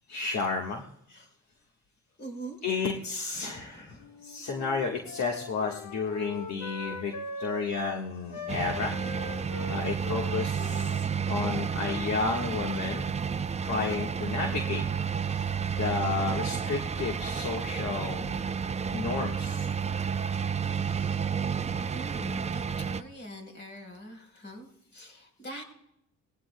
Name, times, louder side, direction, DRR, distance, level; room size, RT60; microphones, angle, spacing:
voice 1, 0.1-0.8 2.6-3.9 4.2-9.0 9.7-13.1 13.6-14.8 15.7-18.4 18.9-19.7, left 4 dB, 65° left, 0 dB, 1.5 m, -32 dB
voice 2, 2.2-2.6 3.3-4.2 15.2-15.5 20.6-21.3 21.9-25.6, right 1 dB, 35° left, 2 dB, 4.1 m, -45 dB
Wind instrument woodwind instrument, 4.0-8.0 8.3-12.8, left 3 dB, 90° left, 1.5 m, -41 dB
sound 1, 8.5-23.0, right 6 dB, 20° right, 0.5 m, -31 dB
20.0 x 15.5 x 2.2 m, 0.77 s
cardioid pair, 90°, 30 cm